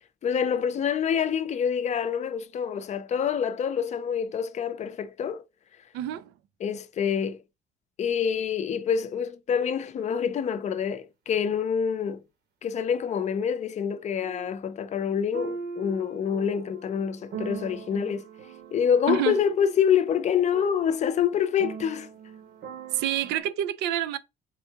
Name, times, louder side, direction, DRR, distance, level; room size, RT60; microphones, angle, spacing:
voice 1, 0.2-5.4 6.6-7.4 8.0-12.2 12.6-18.2 18.7-22.1, left 7 dB, 45° left, 0.5 m, -26 dB
voice 2, 5.9-6.3 19.1-19.4 22.9-24.2, right 11 dB, 90° right, 0.4 m, -27 dB
sound 1, 13.1-13.2 14.2-14.5 15.3-23.4, right 6 dB, 70° right, 1.1 m, -41 dB
3.7 x 3.4 x 2.8 m
cardioid pair, 110°, 17 cm